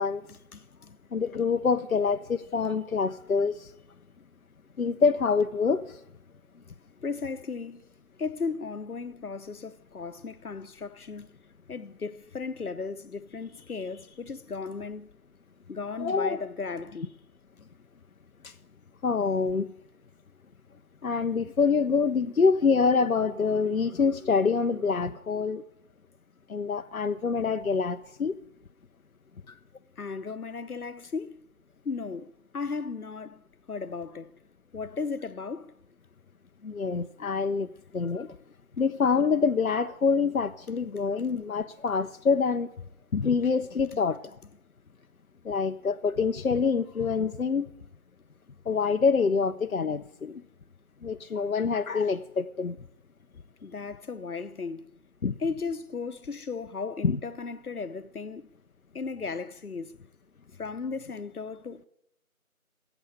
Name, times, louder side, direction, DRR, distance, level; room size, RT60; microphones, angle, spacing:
voice 1, 0.3-1.0 7.0-7.8 8.2-11.3 11.7-15.1 15.7-17.1 30.0-31.4 31.8-33.4 33.7-34.3 34.7-35.7 41.0-41.1 53.6-54.8 55.4-58.4 58.9-59.9 60.6-61.9, left 4 dB, 90° left, 1.0 m, -36 dB
voice 2, 1.1-3.7 4.8-6.0 16.0-16.5 18.4-18.5 19.0-19.7 21.0-25.6 26.5-28.4 36.6-38.4 38.8-42.7 43.1-44.2 45.4-47.7 48.7-50.4 51.0-52.8 55.2-55.3 57.0-57.2, left 5 dB, 70° left, 0.7 m, -26 dB
15.0 x 7.2 x 8.6 m
figure-of-eight pair, 180°, 43 cm